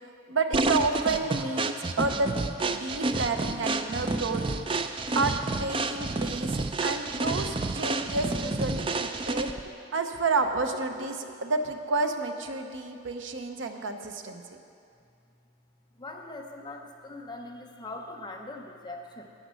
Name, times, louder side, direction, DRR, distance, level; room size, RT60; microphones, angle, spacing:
voice 1, 0.3-2.4 2.7-4.4 5.1-14.4, right 3 dB, 65° right, 6 dB, 0.7 m, -30 dB
sound 1, 0.5-9.7, right 3 dB, 25° right, 0.3 m, -29 dB
voice 2, 15.9-19.3, left 2 dB, 20° left, 2 dB, 0.7 m, -41 dB
10.0 x 9.2 x 6.2 m, 2.4 s
head